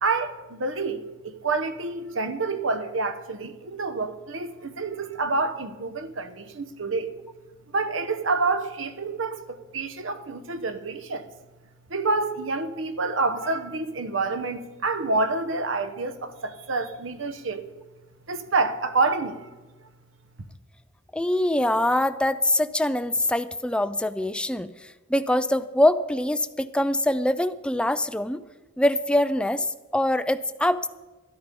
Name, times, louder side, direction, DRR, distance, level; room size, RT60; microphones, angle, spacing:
voice 1, 0.0-7.1 7.7-11.2 11.9-17.6 18.3-19.5, right 3 dB, 70° right, 1.0 m, -28 dB
voice 2, 21.1-24.7 25.1-28.4 28.8-29.7 29.9-30.9, left 1 dB, 5° left, 0.4 m, -23 dB
13.0 x 11.5 x 5.3 m
head